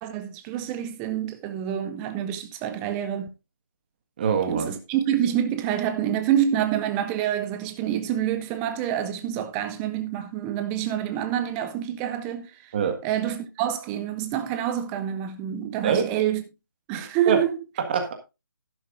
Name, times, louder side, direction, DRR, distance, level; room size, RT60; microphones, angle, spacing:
voice 1, 0.0-3.3 4.5-12.7 13.0-16.4 16.9-17.6, right 10 dB, 10° right, 0.5 m, -27 dB
voice 2, 4.2-4.7 12.7-13.0 15.8-16.1 17.0-17.4 17.8-18.1, right 6 dB, 25° right, 1.6 m, -24 dB
11.5 x 11.0 x 2.5 m
figure-of-eight pair, 160°, 11 cm